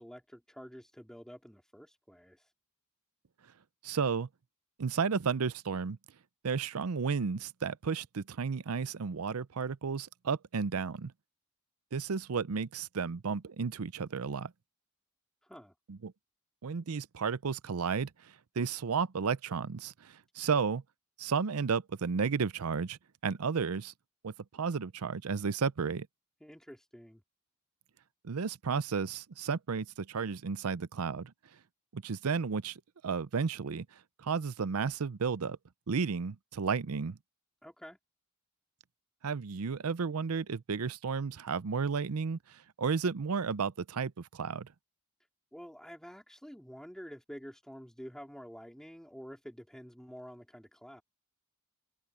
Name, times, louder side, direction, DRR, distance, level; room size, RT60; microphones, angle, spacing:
voice 1, 0.0-2.5 15.4-15.7 26.4-27.2 37.6-38.0 45.5-51.0, equal, 5° left, 3.0 m, -49 dB
voice 2, 3.8-4.3 4.8-6.0 6.4-11.1 11.9-14.5 15.9-16.1 16.6-18.1 18.6-20.8 21.2-23.9 24.2-26.1 28.2-31.3 31.9-33.9 34.2-35.6 35.9-37.2 39.2-42.4 42.8-44.7, right 5 dB, 80° right, 0.6 m, -33 dB
head